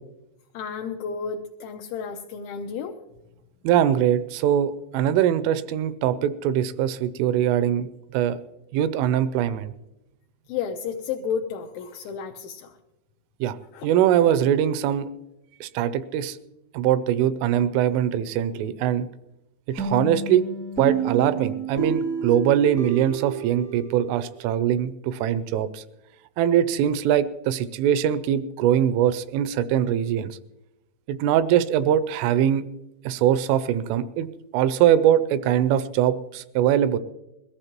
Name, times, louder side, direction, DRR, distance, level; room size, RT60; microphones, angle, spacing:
voice 1, 0.5-3.0 10.5-12.7 13.7-13.9, left 6 dB, 80° left, 4 dB, 2.8 m, -32 dB
voice 2, 3.6-8.4 8.7-9.7 13.4-13.5 13.8-15.1 15.6-16.4 16.7-19.1 19.7-20.4 20.8-25.8 26.4-30.4 31.1-32.6 33.1-34.3 34.5-37.0, right 10 dB, 85° right, 14 dB, 3.1 m, -22 dB
sound 1, 19.8-24.5, right 5 dB, 5° left, 0.5 m, -29 dB
21.5 x 14.5 x 3.0 m, 0.95 s
omnidirectional pair, 5.8 m